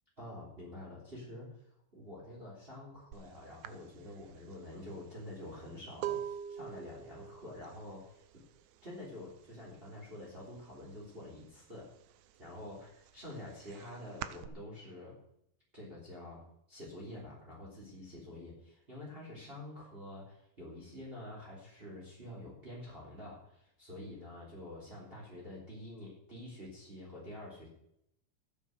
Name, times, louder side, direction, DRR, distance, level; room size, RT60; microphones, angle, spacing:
voice 1, 0.2-8.2 8.8-11.9 12.4-15.2 15.7-16.4 16.7-27.7, left 1 dB, 20° right, -4 dB, 3.6 m, -47 dB
sound 1, 3.1-3.3 3.6-9.3 9.6-10.1 10.4-11.5 11.9-14.5, right 10 dB, 85° right, 2.1 m, -43 dB
13.5 x 8.4 x 6.6 m, 0.75 s
omnidirectional pair, 3.3 m